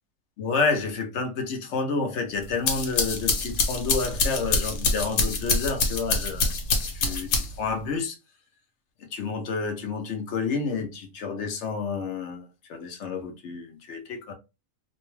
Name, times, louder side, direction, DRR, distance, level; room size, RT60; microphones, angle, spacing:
voice 1, 0.4-8.2 9.0-14.3, left 4 dB, 65° left, 0.8 m, -30 dB
sound 1, 2.4-7.7, left 3 dB, 85° left, 1.2 m, -25 dB
2.6 x 2.2 x 3.0 m
omnidirectional pair, 1.5 m